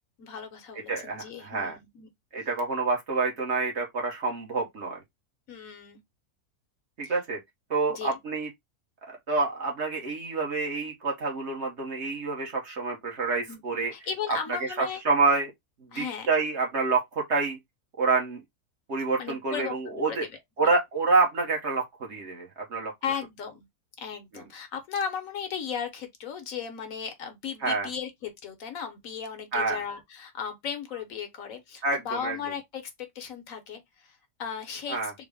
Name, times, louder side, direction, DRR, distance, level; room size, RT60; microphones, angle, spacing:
voice 1, 0.2-2.1 5.5-6.0 7.0-7.1 7.9-8.1 13.5-15.0 15.9-16.3 19.2-20.3 23.0-23.7 24.0-35.1, left 7 dB, 65° left, 1.1 m, -36 dB
voice 2, 0.9-1.8 2.3-5.0 7.0-7.4 7.7-8.5 9.0-13.9 14.5-15.5 15.8-17.6 18.0-18.4 18.9-20.3 20.6-22.9 24.3-24.4 27.6-27.9 29.5-29.8 31.8-32.4 34.9-35.1, right 3 dB, 50° right, 1.2 m, -27 dB
3.8 x 2.1 x 3.3 m
omnidirectional pair, 1.6 m